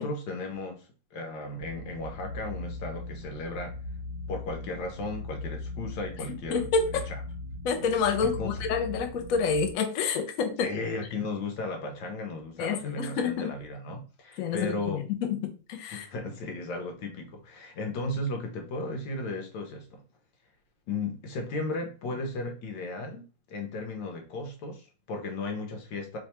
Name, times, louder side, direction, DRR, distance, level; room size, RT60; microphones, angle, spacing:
voice 1, 0.0-3.7 4.3-6.7 8.2-8.5 10.6-15.0 15.9-20.0 20.9-26.2, left 2 dB, 85° left, 3 dB, 1.6 m, -35 dB
sound 1, 1.6-9.7, left 2 dB, 55° right, 1.2 m, -39 dB
voice 2, 6.5-7.0 7.6-10.7 12.6-13.5 14.4-16.1, left 5 dB, 65° left, 5 dB, 0.9 m, -28 dB
3.4 x 2.3 x 4.2 m, 0.35 s
omnidirectional pair, 2.0 m